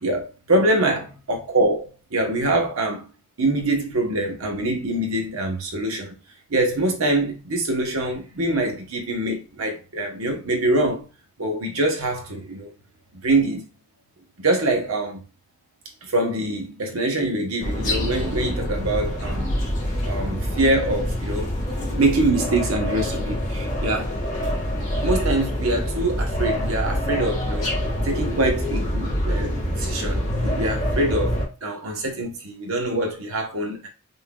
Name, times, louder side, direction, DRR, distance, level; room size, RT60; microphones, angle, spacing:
voice 1, 0.0-3.1 3.4-6.2 6.5-11.1 11.4-12.7 13.1-13.6 14.4-15.2 16.0-19.5 20.0-21.5 22.0-24.1 25.0-27.7 28.0-31.3 31.6-33.9, right 2 dB, 70° right, 1.0 m, -24 dB
sound 1, 17.6-31.4, equal, 35° left, 2.0 m, -26 dB
5.4 x 2.6 x 2.3 m
head